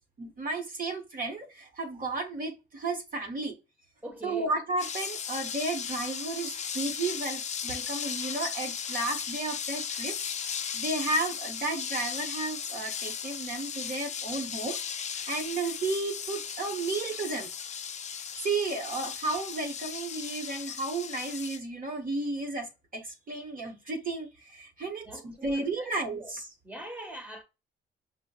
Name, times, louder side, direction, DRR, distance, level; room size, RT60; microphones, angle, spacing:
voice 1, 0.2-3.6 4.2-10.2 10.7-14.8 15.3-17.5 18.4-26.5, right 3 dB, 45° right, 1.0 m, -33 dB
voice 2, 4.0-4.5 25.1-26.3 26.6-27.4, right 1 dB, 10° right, 1.1 m, -43 dB
sound 1, 4.8-21.6, left 7 dB, 35° left, 0.4 m, -36 dB
5.0 x 2.1 x 2.3 m
cardioid pair, 90°, 20 cm